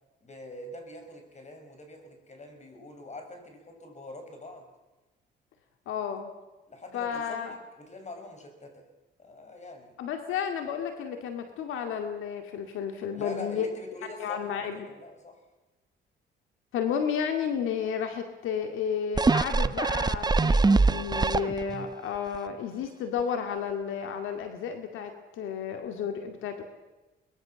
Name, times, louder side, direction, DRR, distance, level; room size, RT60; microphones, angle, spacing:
voice 1, 0.2-4.7 5.9-6.0 6.7-8.9 9.2-9.9 13.1-15.4, left 1 dB, 35° left, 5 dB, 6.2 m, -44 dB
voice 2, 5.9-6.3 6.9-7.5 10.0-13.7 14.2-14.9 16.7-26.6, left 7 dB, 85° left, 6 dB, 2.3 m, -32 dB
sound 1, 19.2-21.9 22.3-22.4, right 3 dB, 20° right, 0.8 m, -23 dB
23.5 x 21.0 x 7.1 m, 1.1 s
cardioid pair, 90°, 20 cm